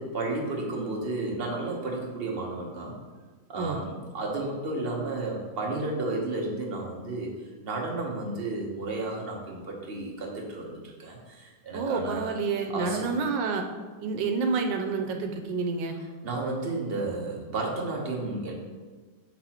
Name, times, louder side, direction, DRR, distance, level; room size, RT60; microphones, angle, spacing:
voice 1, 0.0-3.0 3.5-7.3 7.6-12.3 12.7-13.1 16.2-18.5, right 2 dB, 40° right, -1 dB, 1.0 m, -32 dB
voice 2, 11.7-13.6 14.0-16.0, right 4 dB, 90° right, 4 dB, 1.3 m, -29 dB
6.8 x 6.0 x 2.9 m, 1.4 s
omnidirectional pair, 2.0 m